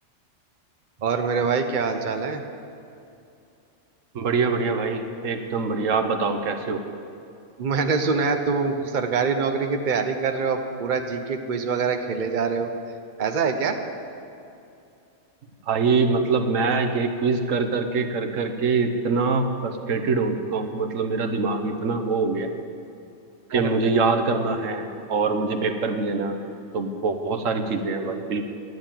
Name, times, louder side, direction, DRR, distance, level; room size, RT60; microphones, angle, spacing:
voice 1, 1.0-2.4 7.6-12.7 13.2-13.8 23.5-23.8, right 5 dB, 40° right, 6 dB, 1.0 m, -24 dB
voice 2, 4.1-6.8 15.7-22.5 23.5-28.5, right 4 dB, 80° right, 7 dB, 1.3 m, -24 dB
12.0 x 9.4 x 8.9 m, 2.6 s
omnidirectional pair, 1.3 m